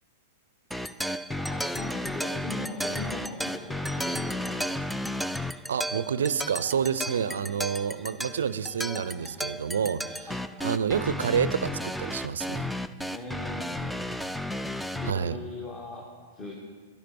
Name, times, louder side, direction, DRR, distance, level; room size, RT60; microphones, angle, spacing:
sound 1, 0.7-15.1, left 1 dB, ahead, 0.3 m, -33 dB
voice 1, 1.4-4.6 7.0-7.2 10.3-10.4 13.1-13.8 14.9-16.1 16.3-16.5, left 2 dB, 35° left, -3 dB, 1.9 m, -39 dB
voice 2, 5.7-10.3 10.6-12.7 15.0-15.4, right 7 dB, 70° right, 16 dB, 0.4 m, -28 dB
12.0 x 11.0 x 4.6 m, 1.6 s
figure-of-eight pair, 100°, 0 cm